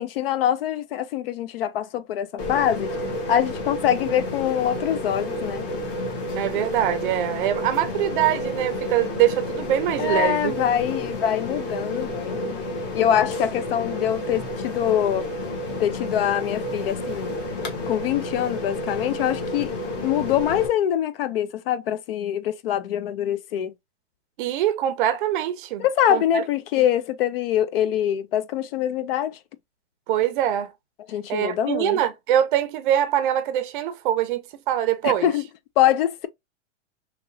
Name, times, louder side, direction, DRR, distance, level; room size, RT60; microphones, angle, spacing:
voice 1, 0.0-2.9 3.3-5.7 10.0-12.6 12.9-15.3 15.8-17.4 17.9-19.7 20.0-23.7 25.8-29.4 31.1-32.0 35.0-35.4 35.8-36.3, left 10 dB, 55° left, 0.4 m, -24 dB
sound 1, 2.4-20.7, left 1 dB, 30° left, 1.0 m, -30 dB
voice 2, 6.4-10.6 24.4-26.4 26.8-26.9 30.1-30.7 31.3-35.3, right 11 dB, 45° right, 0.5 m, -23 dB
2.9 x 2.9 x 2.6 m
hypercardioid pair, 150°, 37 cm